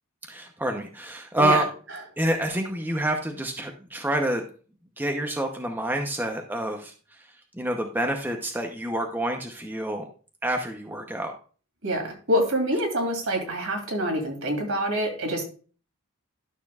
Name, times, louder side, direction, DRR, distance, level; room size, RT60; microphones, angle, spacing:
voice 1, 0.3-1.7 2.2-4.4 5.0-6.9 7.5-10.1 10.4-11.3, right 1 dB, 10° right, 3 dB, 0.7 m, -27 dB
voice 2, 11.8-15.4, equal, 65° right, 3 dB, 2.6 m, -26 dB
12.0 x 6.8 x 2.4 m, 0.38 s
head